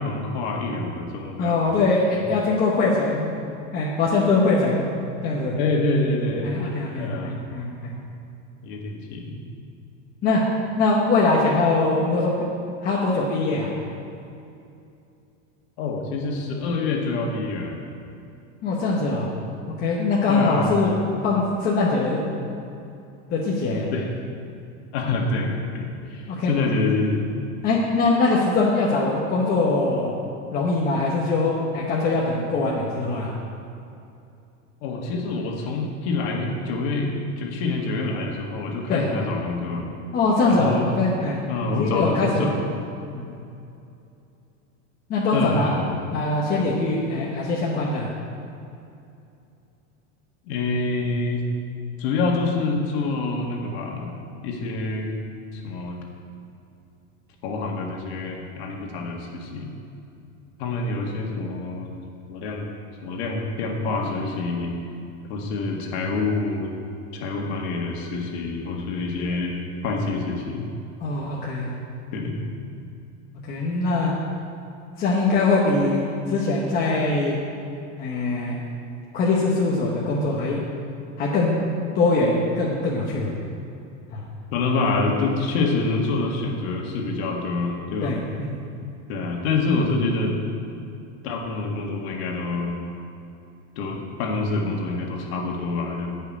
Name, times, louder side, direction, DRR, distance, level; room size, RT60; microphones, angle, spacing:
voice 1, 0.0-1.6 2.1-2.2 5.6-6.6 7.0-7.4 8.6-9.4 15.8-17.8 20.3-20.9 23.9-24.1 24.9-27.2 34.8-39.9 40.5-41.0 41.5-42.6 45.3-45.9 50.5-51.4 52.0-54.1 54.4-55.1 55.5-56.0 57.4-59.7 60.6-62.0 62.3-62.7 63.0-64.7 65.2-66.7 67.1-69.5 69.8-70.7 72.1-72.5 84.5-88.2 89.1-90.3 91.2-92.8 93.8-96.1, left 3 dB, 55° left, 0 dB, 1.9 m, -26 dB
voice 2, 1.4-3.3 3.7-4.9 5.2-5.6 6.4-7.9 10.2-10.4 10.8-12.5 12.8-13.7 18.6-19.3 19.8-20.9 21.2-22.2 23.3-23.9 26.3-26.5 27.6-30.1 30.5-33.3 38.9-39.0 40.1-41.4 41.7-42.6 43.1-43.2 45.1-45.7 46.1-48.1 71.0-71.7 73.4-74.1 75.0-77.4 78.0-78.6 79.1-80.6 81.2-81.6 81.9-83.3 84.1-84.2 88.0-88.5, left 3 dB, 25° left, -4 dB, 1.0 m, -22 dB
10.5 x 5.6 x 8.6 m, 2.6 s
supercardioid pair, 165°, 38 cm